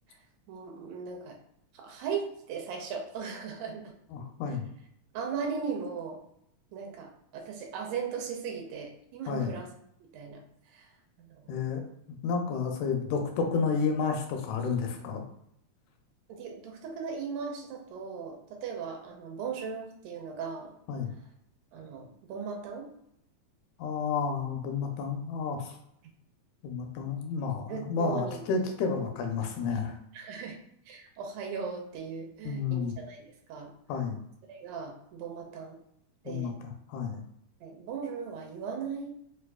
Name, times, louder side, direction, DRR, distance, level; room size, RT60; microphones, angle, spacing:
voice 1, 0.5-1.4 1.7-3.9 5.1-6.2 6.7-9.7 10.1-10.4 10.7-10.9 11.2-11.4 16.3-20.7 21.7-22.9 27.7-28.4 30.1-30.6 30.9-33.2 33.5-33.7 34.5-35.8 36.2-36.6 37.6-39.2, right 6 dB, 80° right, 1 dB, 1.9 m, -38 dB
voice 2, 4.1-4.7 9.3-9.5 11.5-11.8 12.2-15.3 20.9-21.1 23.8-25.8 26.6-29.9 32.5-32.9 33.9-34.2 36.3-37.2, left 5 dB, 85° left, 3 dB, 1.9 m, -31 dB
4.6 x 2.5 x 2.2 m, 0.75 s
omnidirectional pair, 3.3 m